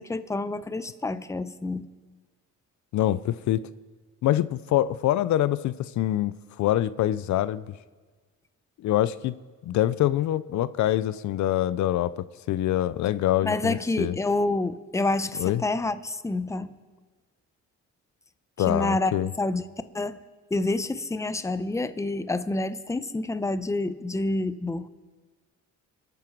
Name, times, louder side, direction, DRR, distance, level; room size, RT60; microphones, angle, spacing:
voice 1, 0.0-1.9 13.4-16.7 18.7-19.6 19.9-20.2 20.5-24.9, left 2 dB, 10° left, 12 dB, 0.7 m, -28 dB
voice 2, 2.9-3.7 4.2-7.6 8.8-14.2 15.4-15.6 18.6-19.3, left 13 dB, 70° left, 16 dB, 0.5 m, -25 dB
25.5 x 9.1 x 4.6 m, 1.4 s
cardioid pair, 90°, 30 cm